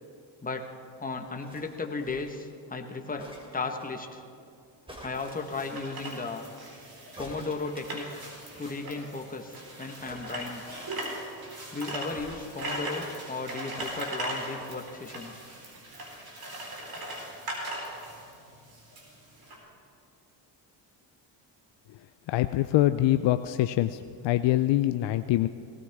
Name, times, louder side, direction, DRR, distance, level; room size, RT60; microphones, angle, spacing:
voice 1, 1.0-4.2 5.0-6.5 7.2-8.3 8.6-10.6 11.7-15.4, left 3 dB, 15° left, 4 dB, 1.4 m, -35 dB
sound 1, 1.4-2.5 3.2-3.9 4.9-6.0 7.2-8.9 9.1-9.2 9.4-9.6 10.0-11.2 12.1-13.0 13.8-14.7 15.5-15.6, equal, 10° right, 3.2 m, -48 dB
sound 2, 5.1-19.6, right 1 dB, 45° right, 4.4 m, -39 dB
voice 2, 22.3-25.5, left 14 dB, 65° left, 10 dB, 0.6 m, -24 dB
18.5 x 15.0 x 3.6 m, 2.5 s
supercardioid pair, 75°, 48 cm